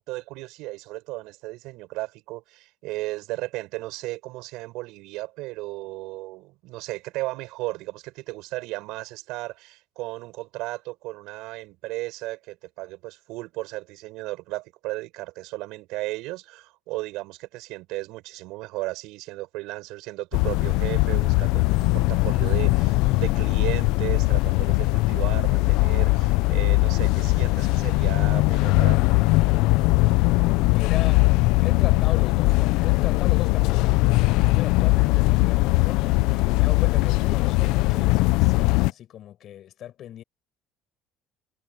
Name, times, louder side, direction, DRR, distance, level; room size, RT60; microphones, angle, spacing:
voice 1, 0.0-29.1, right 20 dB, 70° right, 7.0 m, -35 dB
sound 1, 20.3-38.9, left 22 dB, 70° left, 0.5 m, -20 dB
voice 2, 30.6-31.3 31.6-40.2, left 11 dB, 40° left, 5.1 m, -38 dB
cardioid pair, 165°, 0 cm